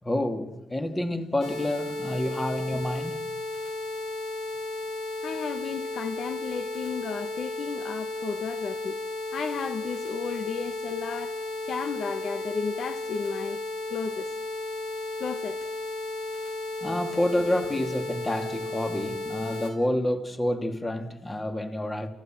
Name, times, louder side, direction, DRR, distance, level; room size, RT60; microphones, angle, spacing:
voice 1, 0.0-3.2 16.8-22.1, left 1 dB, 15° left, 2.5 m, -28 dB
sound 1, 1.4-19.7, left 2 dB, 80° left, 4.5 m, -34 dB
voice 2, 5.2-9.0 9.3-13.6 13.9-14.3 15.2-15.6, left 6 dB, 60° left, 1.2 m, -34 dB
30.0 x 15.0 x 7.6 m
cardioid pair, 90°, 0 cm